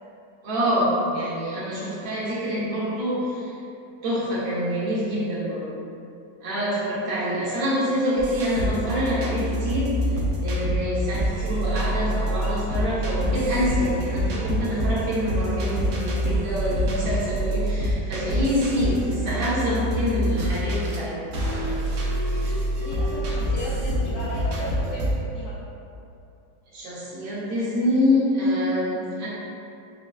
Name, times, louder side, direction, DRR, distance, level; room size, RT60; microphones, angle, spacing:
voice 1, 0.4-3.5 4.0-5.7 6.4-9.9 10.4-21.2 26.7-29.3, equal, 85° right, -8 dB, 1.8 m, -26 dB
sound 1, 8.2-21.0 21.3-25.1, equal, 70° right, 0.8 m, -26 dB
voice 2, 22.7-25.5, left 1 dB, 75° left, -7 dB, 1.2 m, -36 dB
6.2 x 2.1 x 2.3 m, 2.6 s
omnidirectional pair, 2.1 m